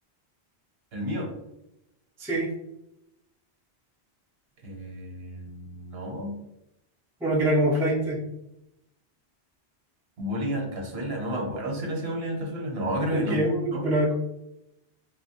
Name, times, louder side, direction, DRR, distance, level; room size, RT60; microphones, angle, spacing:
voice 1, 0.9-1.3 4.6-6.3 10.2-13.4 13.7-13.8, equal, 70° right, 1 dB, 1.0 m, -31 dB
voice 2, 2.2-2.5 7.2-8.2 13.1-14.1, right 1 dB, 5° right, -2 dB, 0.3 m, -24 dB
3.0 x 2.2 x 2.7 m, 0.86 s
omnidirectional pair, 1.1 m